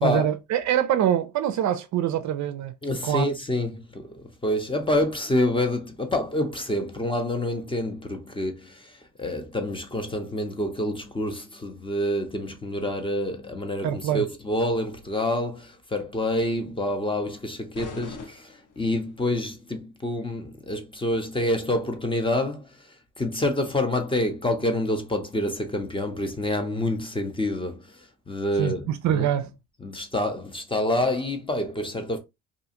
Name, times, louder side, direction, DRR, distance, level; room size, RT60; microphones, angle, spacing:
voice 1, 0.0-2.7 3.0-3.3 13.8-14.2 28.6-29.5, right 10 dB, 50° right, 0.4 m, -24 dB
voice 2, 2.8-29.3 29.8-32.2, left 1 dB, 15° left, 0.6 m, -27 dB
sound 1, 17.7-19.2, left 4 dB, 50° left, 1.1 m, -41 dB
2.5 x 2.3 x 2.8 m
supercardioid pair, 85°, 39 cm